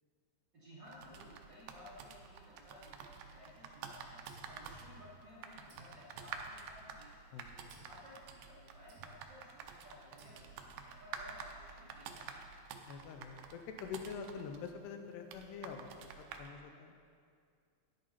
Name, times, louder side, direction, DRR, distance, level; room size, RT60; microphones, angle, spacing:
voice 1, 0.5-4.2 4.5-7.5 7.9-12.4, left 1 dB, 30° right, -10 dB, 2.4 m, -57 dB
sound 1, 0.9-16.5, right 6 dB, 80° right, 2.1 m, -50 dB
sound 2, 4.3-5.3 5.7-7.0 7.7-8.1 8.9-9.4 10.2-10.8, right 2 dB, 65° right, 3.1 m, -60 dB
voice 2, 7.3-7.7 12.9-15.9 16.4-17.0, left 6 dB, 85° left, 5 dB, 2.8 m, -45 dB
11.0 x 10.5 x 4.2 m, 2.2 s
omnidirectional pair, 4.7 m